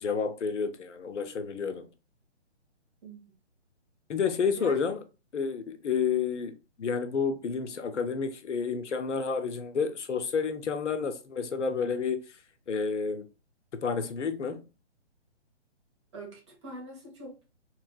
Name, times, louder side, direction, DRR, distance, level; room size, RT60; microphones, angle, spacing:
voice 1, 0.0-1.8 4.1-5.0 5.3-12.4 12.7-13.3 13.7-14.7, left 5 dB, 90° left, 0.6 m, -30 dB
voice 2, 16.1-17.5, right 2 dB, 25° right, 1.0 m, -44 dB
3.1 x 2.9 x 2.3 m
hypercardioid pair, 160°, 35 cm